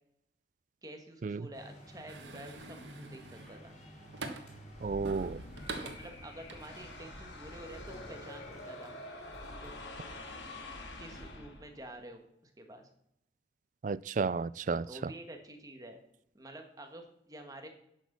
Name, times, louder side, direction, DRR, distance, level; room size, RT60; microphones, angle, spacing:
voice 1, 0.8-3.8 5.8-8.9 9.6-9.8 11.0-12.9 14.8-16.0 16.3-17.7, right 1 dB, 20° right, 1.7 m, -49 dB
sound 1, 1.5-11.4, equal, 40° left, 3.8 m, -55 dB
sound 2, 2.1-4.7 5.1-7.2 7.6-7.8, right 3 dB, 80° right, 1.3 m, -45 dB
sound 3, 4.7-11.9, left 1 dB, 80° left, 2.1 m, -46 dB
voice 2, 4.8-5.4 13.8-15.1, right 4 dB, 45° right, 0.3 m, -33 dB
10.5 x 6.4 x 6.9 m
head